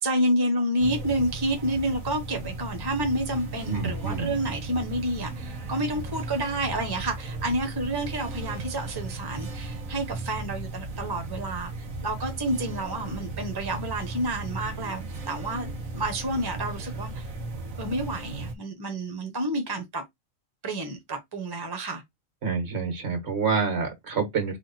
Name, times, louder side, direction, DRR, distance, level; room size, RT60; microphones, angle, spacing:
voice 1, 0.0-11.7 12.0-17.2 17.8-20.0 20.6-22.0, right 1 dB, 20° right, 0.9 m, -29 dB
sound 1, 0.8-18.5, right 2 dB, 85° right, 1.5 m, -36 dB
voice 2, 3.7-4.4 22.4-24.6, right 5 dB, 55° right, 1.8 m, -27 dB
3.7 x 3.4 x 4.0 m
omnidirectional pair, 1.4 m